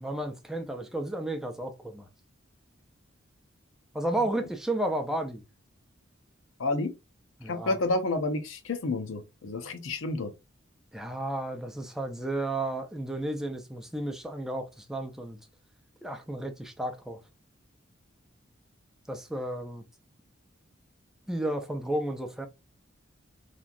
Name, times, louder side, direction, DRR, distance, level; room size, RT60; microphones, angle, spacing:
voice 1, 0.0-2.1 3.9-5.4 7.4-7.8 10.9-15.4 16.0-17.2 19.1-19.8 21.3-22.5, right 1 dB, ahead, 0.4 m, -32 dB
voice 2, 6.6-6.9 7.5-10.3, left 2 dB, 90° left, 0.6 m, -30 dB
3.0 x 2.4 x 2.5 m
head